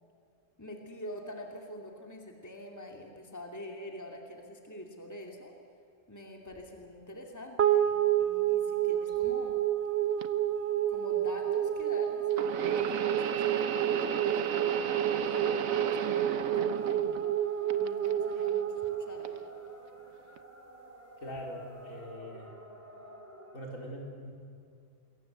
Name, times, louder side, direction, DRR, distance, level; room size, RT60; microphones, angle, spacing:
voice 1, 0.6-5.5 6.1-9.6 10.9-14.6 15.3-17.1 17.8-19.4, left 1 dB, 10° left, 2 dB, 2.6 m, -46 dB
sound 1, 6.5-6.9 7.9-8.0 9.0-9.4 9.7-10.1 10.8-10.9 11.4-11.5 12.1-12.3 13.4-23.6, equal, 10° right, 3.4 m, -52 dB
sound 2, 7.6-20.1, right 10 dB, 50° right, 1.2 m, -29 dB
sound 3, 10.2-10.3 12.3-17.4 17.7-18.5 19.2-19.4 20.4-20.5, right 7 dB, 65° right, 1.3 m, -35 dB
voice 2, 21.2-22.5 23.5-24.3, equal, 60° left, -1 dB, 5.0 m, -42 dB
27.5 x 22.5 x 8.1 m, 2.5 s
omnidirectional pair, 1.5 m